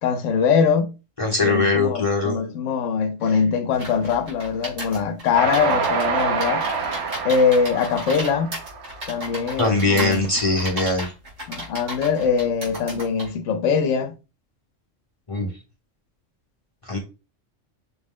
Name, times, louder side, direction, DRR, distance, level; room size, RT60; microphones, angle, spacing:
voice 1, 0.0-0.9 1.4-6.6 7.2-8.6 9.1-10.3 11.5-14.1, left 6 dB, 80° left, 0.9 m, -22 dB
voice 2, 1.2-2.4 9.6-11.1 15.3-15.5 16.8-17.0, left 2 dB, 30° left, 0.8 m, -21 dB
sound 1, 3.7-13.3, right 1 dB, 85° right, 2.6 m, -34 dB
Train, 5.3-9.7, right 5 dB, 60° right, 1.1 m, -26 dB
6.0 x 2.0 x 3.6 m
omnidirectional pair, 1.3 m